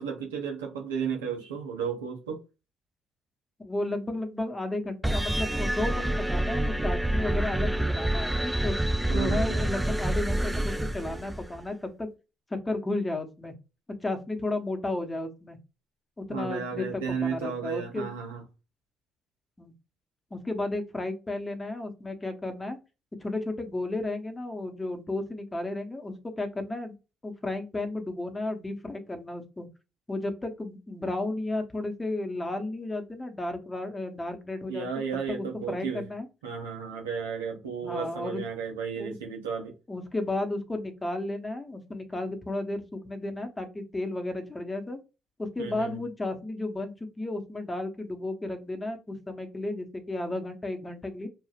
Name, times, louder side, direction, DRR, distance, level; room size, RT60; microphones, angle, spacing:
voice 1, 0.0-2.4 9.1-9.6 16.3-18.4 34.7-36.0 36.4-39.8 45.6-46.0, right 6 dB, 85° right, 0.7 m, -33 dB
voice 2, 3.6-12.1 12.6-13.5 14.0-15.6 16.2-18.1 19.6-19.7 20.3-22.8 23.2-26.9 27.2-29.7 30.1-34.9 35.3-36.3 37.8-38.4 39.0-39.1 39.9-45.0 45.4-51.3, left 2 dB, 20° left, 0.9 m, -33 dB
sound 1, 5.0-11.6, right 1 dB, 10° right, 0.4 m, -27 dB
3.3 x 2.4 x 2.4 m
hypercardioid pair, 50°, 0 cm